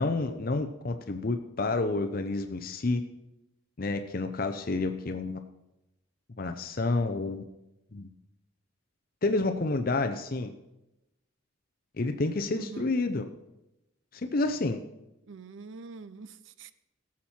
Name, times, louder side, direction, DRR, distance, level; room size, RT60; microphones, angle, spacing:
voice 1, 0.0-3.0 3.8-5.4 6.4-7.4 7.9-8.1 9.2-10.5 12.0-13.3 14.1-14.8, left 3 dB, 45° left, 0.6 m, -29 dB
voice 2, 12.5-12.9 15.3-16.7, right 4 dB, 70° right, 0.6 m, -45 dB
17.5 x 7.3 x 4.4 m
head